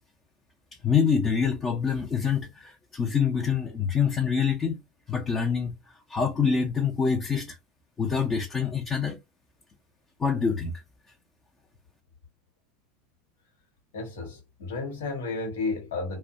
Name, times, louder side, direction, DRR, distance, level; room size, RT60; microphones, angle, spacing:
voice 1, 0.8-4.8 5.1-5.8 6.1-7.6 8.0-9.2 10.2-10.7, left 6 dB, 25° left, 0.6 m, -25 dB
voice 2, 13.9-16.2, left 3 dB, 80° left, 0.9 m, -32 dB
2.4 x 2.2 x 2.5 m
hypercardioid pair, 95°, 0 cm